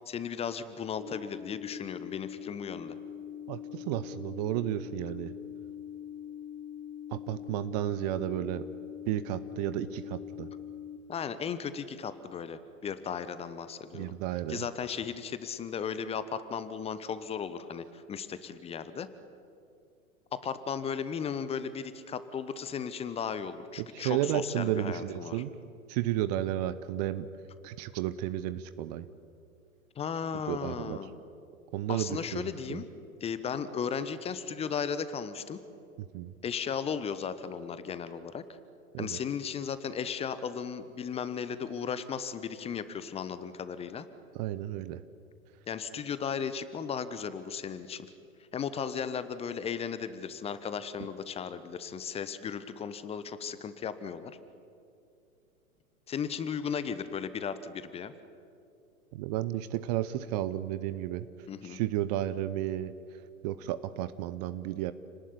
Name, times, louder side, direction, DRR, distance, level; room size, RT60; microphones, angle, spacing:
voice 1, 0.1-3.0 11.1-14.1 14.5-19.1 20.3-25.4 30.0-31.1 31.9-32.8 33.2-35.6 36.4-38.4 39.0-44.1 45.7-48.1 48.5-54.3 56.1-58.1 61.5-61.8, left 7 dB, 15° left, 13 dB, 1.1 m, -36 dB
sound 1, 1.0-11.0, left 9 dB, 45° left, 2.7 m, -43 dB
voice 2, 3.5-5.3 7.1-8.7 9.1-10.5 13.9-14.7 23.8-25.5 25.9-27.3 27.6-29.1 30.5-31.0 31.7-32.8 36.0-36.3 38.9-39.2 44.3-45.0 59.1-61.3 61.6-64.9, right 13 dB, 30° right, 14 dB, 0.8 m, -33 dB
29.5 x 19.0 x 10.0 m, 2.5 s
figure-of-eight pair, 105°, 43 cm